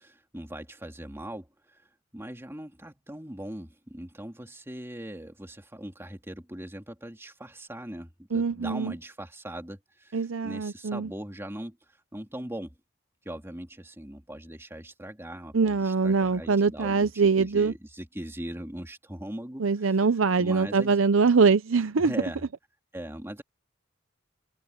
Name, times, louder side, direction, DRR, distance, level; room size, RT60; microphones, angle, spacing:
voice 1, 0.0-11.8 12.1-12.8 13.2-17.1 17.4-20.0 20.4-21.0 21.9-22.4 22.9-23.4, right 1 dB, 15° right, 2.8 m, -40 dB
voice 2, 8.3-8.9 10.1-11.1 15.5-17.7 19.6-22.1, right 4 dB, 85° right, 0.7 m, -23 dB
head